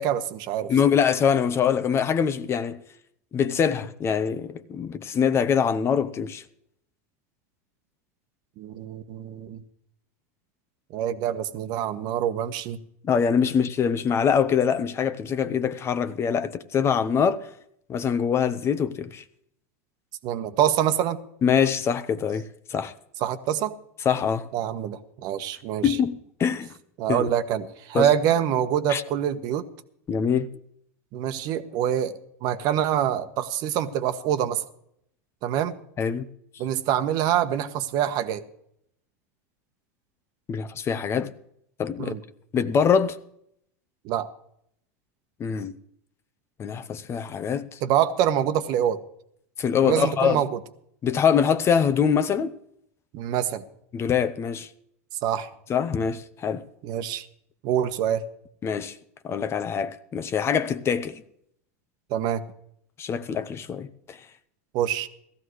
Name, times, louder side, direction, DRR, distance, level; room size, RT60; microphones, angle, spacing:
voice 1, 0.0-0.7 8.6-9.6 10.9-12.8 20.2-21.2 23.2-23.7 24.5-26.0 27.0-29.7 31.1-34.6 35.4-35.8 36.6-38.4 42.0-42.2 44.0-44.3 47.8-49.0 49.8-50.5 53.1-53.6 55.2-55.5 56.8-57.3 57.6-58.3 62.1-62.4 64.7-65.1, right 10 dB, 55° right, 1.3 m, -25 dB
voice 2, 0.7-2.8 3.3-6.4 13.0-17.5 17.9-19.2 21.4-22.4 22.7-22.9 24.0-24.5 25.8-26.7 27.1-27.3 27.9-28.1 28.9-29.0 30.1-30.5 36.0-36.3 40.5-41.3 41.8-42.1 42.5-43.2 45.4-45.7 46.6-47.8 49.6-50.4 51.0-52.5 53.9-54.7 55.7-56.6 58.6-59.0 59.2-61.2 63.0-64.2, left 7 dB, 30° left, 0.9 m, -24 dB
17.5 x 14.0 x 3.2 m
hypercardioid pair, 105°, 8 cm